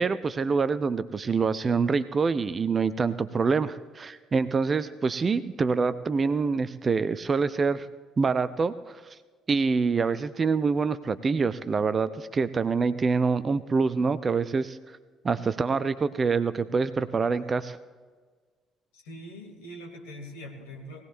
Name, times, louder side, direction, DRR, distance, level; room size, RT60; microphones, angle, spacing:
voice 1, 0.0-7.9 8.2-9.0 9.5-14.8 15.2-17.8, right 4 dB, 30° right, 14 dB, 0.6 m, -26 dB
voice 2, 18.9-21.0, equal, 70° left, 0 dB, 2.5 m, -42 dB
20.5 x 17.5 x 2.6 m, 1.5 s
figure-of-eight pair, 50°, 0 cm